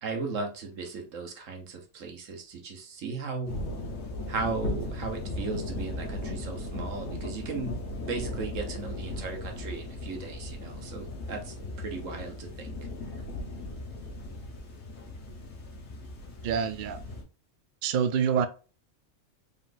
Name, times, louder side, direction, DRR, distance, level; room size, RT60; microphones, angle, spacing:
voice 1, 0.0-3.5 4.3-7.7 8.1-12.8, right 4 dB, 85° right, 1.3 m, -36 dB
sound 1, 3.5-17.2, left 1 dB, 65° left, 1.5 m, -37 dB
voice 2, 16.4-17.0 17.8-18.5, right 7 dB, 60° right, 0.5 m, -26 dB
3.9 x 3.9 x 2.5 m
omnidirectional pair, 1.3 m